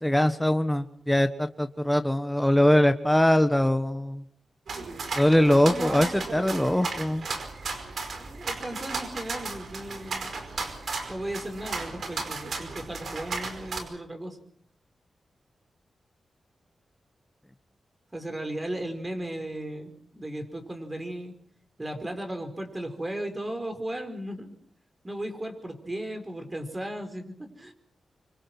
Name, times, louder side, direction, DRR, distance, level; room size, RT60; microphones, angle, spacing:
voice 1, 0.0-4.2 5.2-7.3, left 1 dB, 5° left, 8 dB, 1.4 m, -22 dB
sound 1, 4.7-13.8, right 4 dB, 65° right, 5.1 m, -35 dB
voice 2, 8.2-10.3 11.1-14.4 18.1-21.3 21.8-24.5 25.0-27.7, right 1 dB, 20° right, 6 dB, 4.9 m, -36 dB
25.0 x 25.0 x 6.1 m, 0.63 s
cardioid pair, 80°, 0 cm